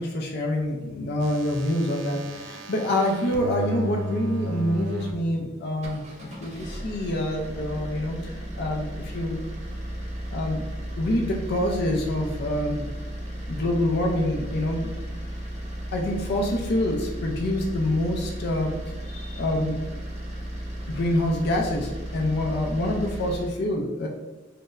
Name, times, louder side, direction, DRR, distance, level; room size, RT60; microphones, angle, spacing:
voice 1, 0.0-6.0 6.4-9.4 10.3-10.6 10.9-12.9 13.5-14.9 15.9-18.7 19.1-19.8 20.9-24.1, left 1 dB, 55° left, 0 dB, 0.4 m, -26 dB
sound 1, 1.2-5.1 5.8-5.9, right 1 dB, 75° right, 0.5 m, -33 dB
sound 2, 5.7-23.6, equal, 35° right, 0.7 m, -35 dB
4.3 x 2.0 x 2.5 m, 1.1 s
head